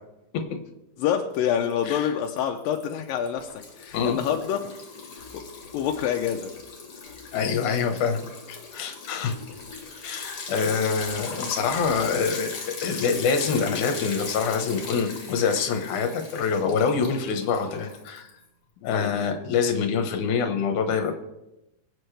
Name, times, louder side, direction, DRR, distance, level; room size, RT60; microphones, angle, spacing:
voice 1, 1.0-4.7 5.3-5.4 5.7-6.5 18.8-19.1, left 9 dB, 85° left, 4 dB, 2.4 m, -27 dB
Liquid, 1.3-1.9 2.3-18.4, left 4 dB, 45° left, 2.5 m, -39 dB
voice 2, 7.3-8.2 8.5-9.4 10.0-18.3 18.8-21.1, left 5 dB, 65° left, 5 dB, 2.6 m, -25 dB
23.0 x 8.4 x 3.3 m, 0.93 s
omnidirectional pair, 4.0 m